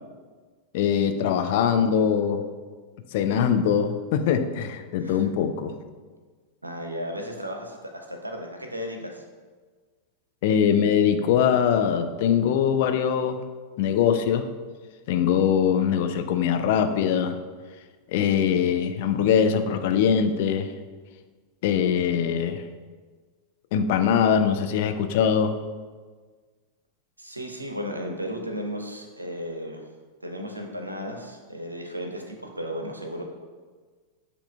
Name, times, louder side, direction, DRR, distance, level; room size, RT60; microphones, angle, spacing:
voice 1, 0.7-2.4 3.1-5.7 10.4-13.4 13.8-14.5 15.1-17.4 18.1-20.7 21.6-22.6 23.7-25.6, left 8 dB, 50° left, 7 dB, 0.3 m, -22 dB
voice 2, 6.6-9.2 27.2-29.8 30.2-33.2, equal, 85° right, 3 dB, 0.5 m, -34 dB
7.8 x 2.7 x 2.2 m, 1.5 s
figure-of-eight pair, 90°, 0 cm